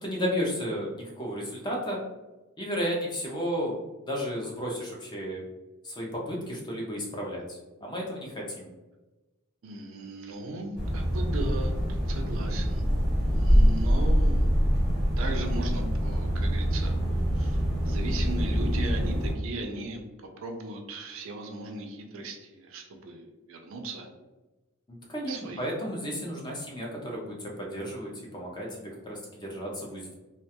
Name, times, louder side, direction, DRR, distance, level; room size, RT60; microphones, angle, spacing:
voice 1, 0.0-2.0 2.6-3.7 4.1-5.4 5.8-8.7 24.9-30.1, equal, 20° left, -2 dB, 0.4 m, -33 dB
voice 2, 9.6-12.9 13.3-14.5 15.2-16.9 17.3-20.0 20.4-24.1 25.3-25.7, right 2 dB, 65° right, 4 dB, 0.4 m, -37 dB
sound 1, 10.7-19.3, equal, 5° right, 0.9 m, -25 dB
2.3 x 2.2 x 2.8 m, 1.1 s
head